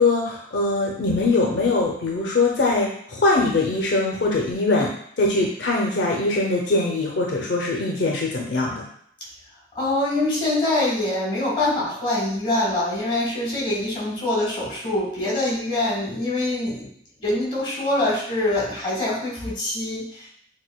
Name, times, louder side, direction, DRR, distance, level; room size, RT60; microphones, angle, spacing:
voice 1, 0.0-8.9, left 3 dB, 75° left, -1 dB, 0.5 m, -22 dB
voice 2, 9.7-16.9 17.2-20.3, left 2 dB, 30° left, -4 dB, 1.3 m, -24 dB
6.2 x 2.2 x 2.2 m, 0.66 s
head